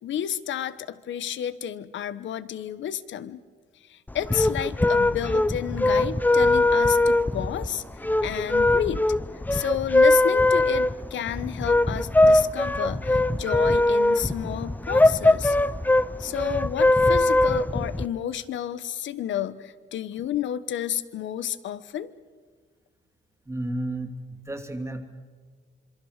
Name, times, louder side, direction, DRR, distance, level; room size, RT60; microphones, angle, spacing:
voice 1, 0.0-3.4 3.8-7.8 8.2-9.1 9.5-15.6 16.2-22.1, left 10 dB, 70° left, 15 dB, 1.1 m, -31 dB
sound 1, 4.1-18.1, left 2 dB, 10° left, 0.6 m, -21 dB
voice 2, 23.5-25.0, right 1 dB, 15° right, 4 dB, 2.7 m, -32 dB
26.5 x 23.0 x 6.5 m, 1.5 s
cardioid pair, 90°, 20 cm